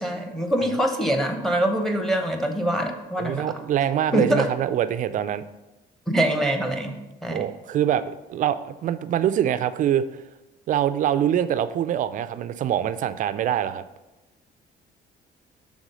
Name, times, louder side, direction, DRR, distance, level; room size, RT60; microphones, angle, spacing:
voice 1, 0.0-3.5 4.1-4.5 6.1-7.4, right 1 dB, ahead, 4 dB, 0.8 m, -24 dB
voice 2, 3.2-5.4 7.3-10.0 10.7-13.8, right 10 dB, 50° right, 12 dB, 0.4 m, -24 dB
6.1 x 3.6 x 5.4 m, 0.99 s
cardioid pair, 110°, 17 cm